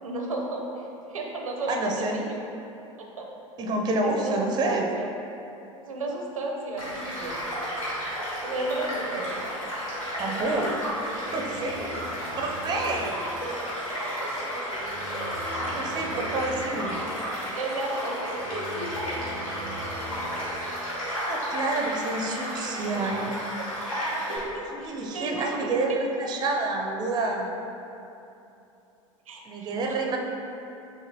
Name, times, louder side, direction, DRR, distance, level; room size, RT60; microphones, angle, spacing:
voice 1, 0.0-2.4 3.0-3.3 4.0-5.1 5.8-7.4 8.4-9.3 17.5-18.2 24.5-26.0 29.3-30.1, right 2 dB, 85° right, 0 dB, 0.5 m, -33 dB
voice 2, 1.7-2.2 3.6-4.9 10.2-10.7 11.3-11.7 12.4-13.2 15.6-17.0 21.3-23.4 24.6-27.6 29.5-30.2, right 2 dB, 25° right, 1 dB, 0.4 m, -28 dB
Child speech kid speaking / Stream / Car passing by, 6.8-24.4, equal, 85° left, 1.2 m, -32 dB
Organ, 8.7-20.8, equal, 25° left, 0.9 m, -43 dB
5.7 x 2.6 x 2.7 m, 2.9 s
figure-of-eight pair, 80°, 17 cm